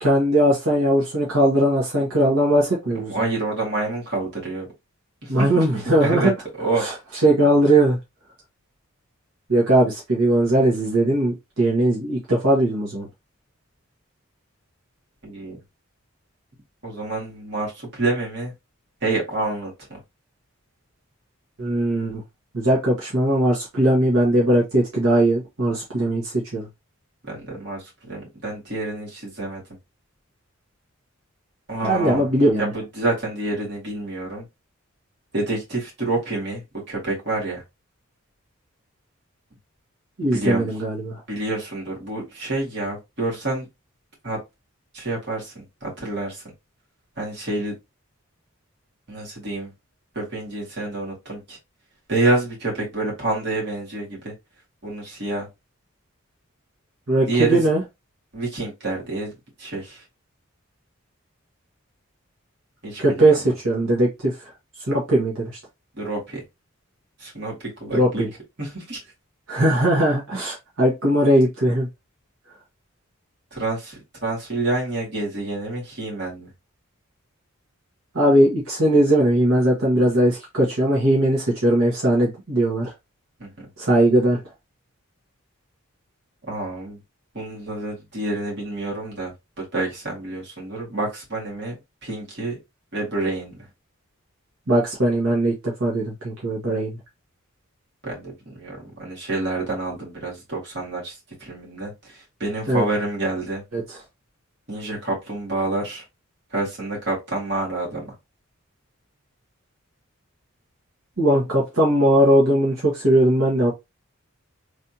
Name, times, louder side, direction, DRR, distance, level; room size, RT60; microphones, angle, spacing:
voice 1, 0.0-3.2 5.3-6.3 6.8-6.9 7.2-8.0 9.5-13.1 21.6-22.2 22.5-26.7 31.8-32.7 40.2-41.2 57.1-57.8 63.0-64.4 64.9-65.6 67.9-68.3 69.5-71.9 78.1-82.9 83.8-84.4 94.7-97.0 102.7-102.8 103.7-104.0 111.2-113.7, right 1 dB, 75° right, 1.5 m, -19 dB
voice 2, 2.9-4.7 5.2-6.3 6.6-6.9 15.2-15.6 16.8-18.5 19.0-20.0 27.2-29.6 31.7-32.3 32.6-34.4 35.3-37.6 40.3-40.7 41.3-43.7 44.2-44.4 44.9-46.4 47.2-47.8 49.1-49.7 50.2-51.6 52.1-54.3 54.8-55.5 57.3-57.6 58.3-59.3 59.6-60.0 62.8-63.4 65.9-66.4 67.2-68.3 68.6-69.0 73.5-76.5 83.4-83.7 86.5-87.0 87.3-91.7 92.0-92.6 92.9-93.7 98.0-103.6 104.7-106.0 106.5-108.1, right 2 dB, 50° right, 2.1 m, -28 dB
3.4 x 3.3 x 2.8 m
head